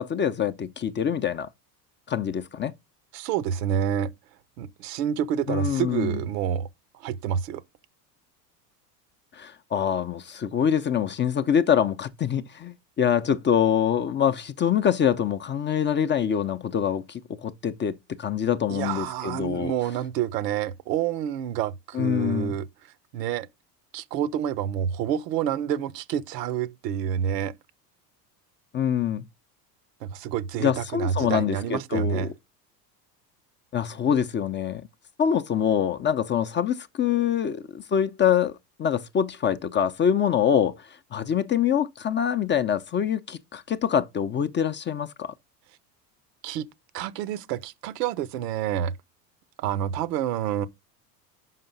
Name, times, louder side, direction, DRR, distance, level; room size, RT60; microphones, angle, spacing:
voice 1, 0.0-1.5 2.1-2.7 5.5-6.2 9.3-19.7 21.9-22.6 28.7-29.2 30.6-32.3 33.7-34.9 35.2-40.8 41.1-45.3, left 8 dB, 25° left, 0.5 m, -25 dB
voice 2, 3.1-4.1 4.6-6.7 6.9-7.6 18.7-23.5 23.9-27.5 30.0-32.3 46.4-46.7 46.9-48.9 49.6-50.7, right 9 dB, 75° right, 0.9 m, -28 dB
5.7 x 5.4 x 5.2 m
hypercardioid pair, 85°, 49 cm